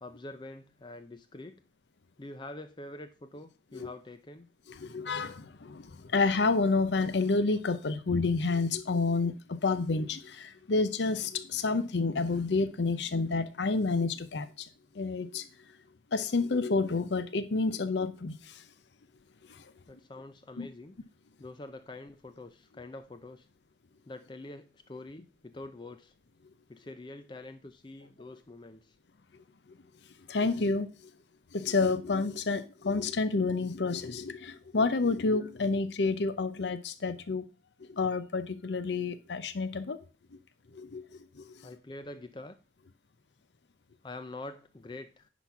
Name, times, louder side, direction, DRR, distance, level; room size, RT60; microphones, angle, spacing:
voice 1, 0.0-1.6 2.2-4.5 19.9-21.0 21.4-23.5 24.1-26.1 26.7-29.0 30.7-30.8 41.6-42.6 44.0-45.3, left 2 dB, 25° left, 0.5 m, -45 dB
voice 2, 4.7-5.9 6.1-14.7 15.0-15.4 16.1-18.4 20.6-20.7 30.3-30.9 31.5-37.4 38.0-40.0 40.8-41.0, left 3 dB, 75° left, 0.6 m, -29 dB
10.0 x 4.1 x 5.8 m
head